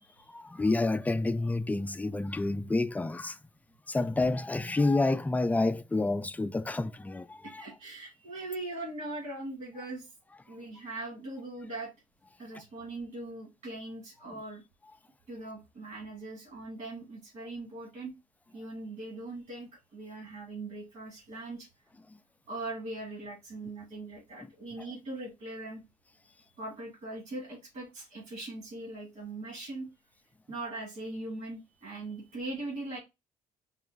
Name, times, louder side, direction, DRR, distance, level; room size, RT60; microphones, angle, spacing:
voice 1, 0.3-3.4 3.9-7.7, left 2 dB, 10° left, 0.3 m, -29 dB
voice 2, 7.4-10.1 10.5-11.9 12.4-14.6 15.3-18.1 18.5-21.7 22.5-25.8 26.3-29.9 30.5-33.0, right 2 dB, 65° right, 2.2 m, -40 dB
4.3 x 2.1 x 3.9 m
cardioid pair, 100°, 15 cm